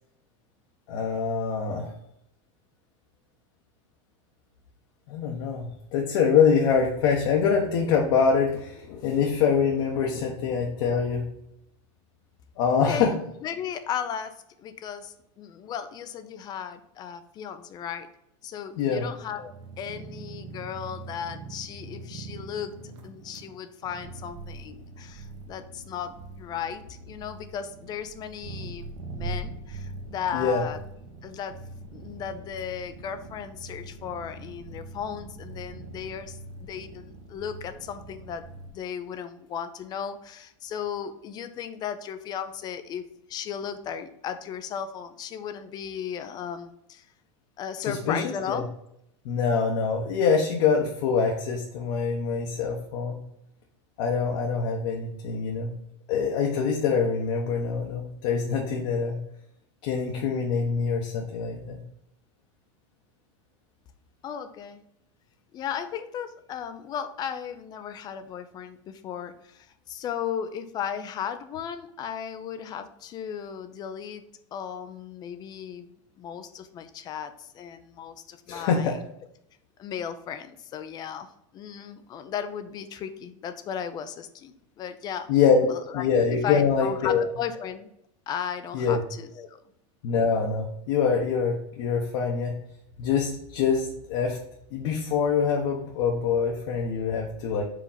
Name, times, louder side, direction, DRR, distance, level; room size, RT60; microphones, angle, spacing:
voice 1, 0.9-1.9 5.1-11.3 12.6-13.1 18.8-19.0 30.3-30.6 47.8-48.2 48.5-48.6 49.2-53.2 54.0-55.7 56.1-59.2 59.8-61.8 78.5-79.0 85.3-85.7 85.9-87.2 88.7-89.0 90.0-92.5 93.0-94.4 94.7-97.6, left 6 dB, 55° left, -1 dB, 1.1 m, -24 dB
voice 2, 12.9-18.1 18.4-22.8 23.0-30.8 31.2-31.6 31.9-38.5 38.7-43.0 43.3-47.1 47.6-48.7 64.2-64.8 65.5-74.3 74.5-75.9 76.2-79.0 79.8-81.3 81.5-85.3 85.7-86.1 86.4-87.9 88.3-89.6, left 8 dB, 25° left, 11 dB, 0.5 m, -35 dB
sound 1, 19.2-38.7, right 3 dB, 80° right, 1.4 m, -42 dB
5.0 x 3.8 x 5.6 m, 0.78 s
supercardioid pair, 155°, 16 cm